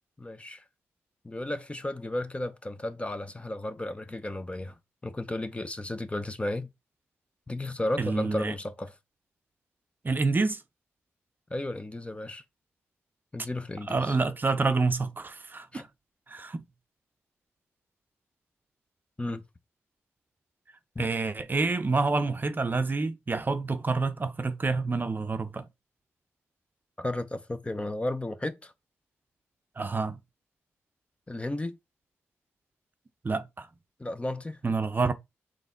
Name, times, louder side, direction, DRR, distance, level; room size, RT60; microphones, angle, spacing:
voice 1, 0.2-0.6 1.2-4.7 5.0-6.7 7.5-8.9 11.5-12.4 13.3-14.1 15.7-15.8 19.2-19.4 21.0-21.1 27.0-28.7 31.3-31.8 34.0-34.6, left 1 dB, 20° left, 0.7 m, -33 dB
voice 2, 8.0-8.5 10.0-10.6 13.9-15.9 16.3-16.6 21.0-25.7 29.8-30.2 33.2-33.7 34.6-35.1, right 3 dB, 35° right, 0.6 m, -28 dB
4.0 x 3.1 x 3.8 m
supercardioid pair, 45°, 5 cm